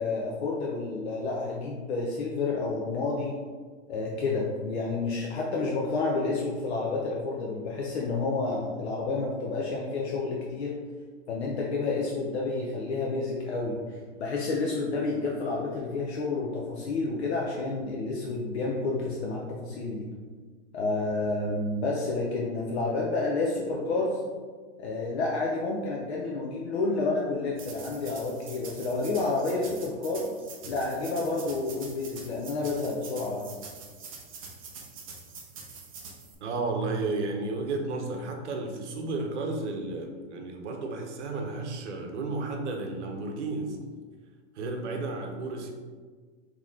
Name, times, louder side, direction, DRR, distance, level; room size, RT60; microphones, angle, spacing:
voice 1, 0.0-3.4 3.9-10.7 11.3-20.1 20.7-24.2 24.8-30.2 30.7-33.6 44.6-44.7, left 3 dB, 60° left, -3 dB, 0.7 m, -30 dB
sound 1, 27.5-36.3, right 4 dB, 30° right, 0.4 m, -45 dB
voice 2, 36.4-43.8 44.5-45.7, right 3 dB, 65° right, 3 dB, 0.9 m, -32 dB
4.0 x 3.0 x 3.6 m, 1.5 s
supercardioid pair, 175°, 37 cm